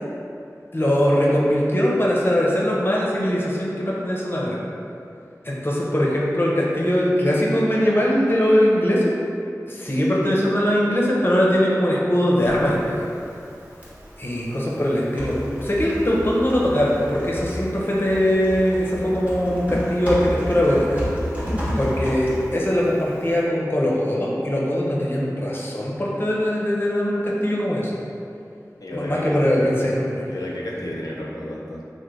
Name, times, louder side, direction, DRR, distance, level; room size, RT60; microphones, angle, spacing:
voice 1, 0.7-4.6 5.4-9.1 9.7-13.1 14.2-21.0 21.8-28.0 28.9-30.3, equal, 35° left, -4 dB, 0.6 m, -21 dB
Typing, 12.4-23.4, equal, 20° right, 1.1 m, -32 dB
voice 2, 28.8-29.7 30.2-31.8, left 1 dB, 75° left, -4 dB, 0.5 m, -32 dB
3.2 x 2.1 x 3.6 m, 2.5 s
wide cardioid pair, 40°, 6 cm